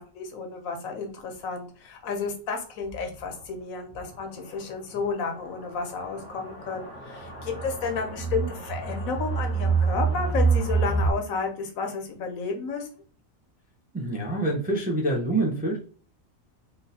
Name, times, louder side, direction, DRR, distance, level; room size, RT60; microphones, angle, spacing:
voice 1, 0.0-12.9, left 4 dB, 80° left, 3 dB, 1.2 m, -32 dB
sound 1, 2.9-3.0 3.4-3.5 4.0-4.1 4.9-11.1, right 5 dB, 10° left, 0.8 m, -27 dB
voice 2, 13.9-15.8, right 2 dB, 15° right, -2 dB, 0.4 m, -26 dB
3.7 x 2.4 x 2.7 m, 0.40 s
omnidirectional pair, 1.4 m